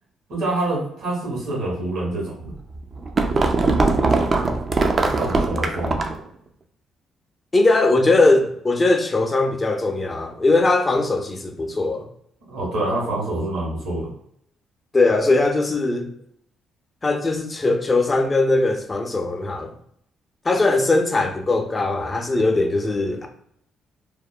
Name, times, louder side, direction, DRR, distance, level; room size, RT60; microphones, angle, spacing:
voice 1, 0.3-2.5 5.2-6.0 12.5-14.1, right 2 dB, 80° right, 1.5 m, -26 dB
sound 1, 2.5-6.3, right 3 dB, 40° right, 0.3 m, -21 dB
voice 2, 7.5-12.1 14.9-16.1 17.0-19.7 20.4-23.3, left 2 dB, 25° left, 0.4 m, -20 dB
2.9 x 2.1 x 2.2 m
cardioid pair, 90°, 0 cm